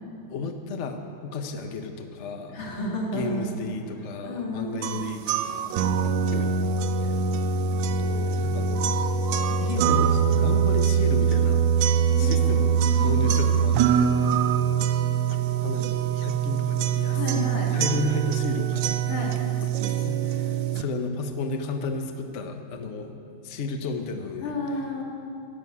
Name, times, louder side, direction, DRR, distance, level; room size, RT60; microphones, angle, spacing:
voice 1, 0.3-2.6 3.1-5.8 6.3-6.5 7.0-7.1 7.7-8.9 9.6-11.6 12.2-14.4 15.5-19.3 20.0-23.1 23.4-24.6, left 3 dB, 55° left, 5 dB, 0.8 m, -33 dB
voice 2, 2.5-3.5 4.2-5.0 12.1-13.2 17.1-17.7 19.1-19.3 24.4-25.0, left 1 dB, 75° left, -2 dB, 3.0 m, -32 dB
sound 1, 4.8-20.8, right 7 dB, 75° right, 1.3 m, -23 dB
13.0 x 7.8 x 9.5 m, 2.6 s
omnidirectional pair, 2.2 m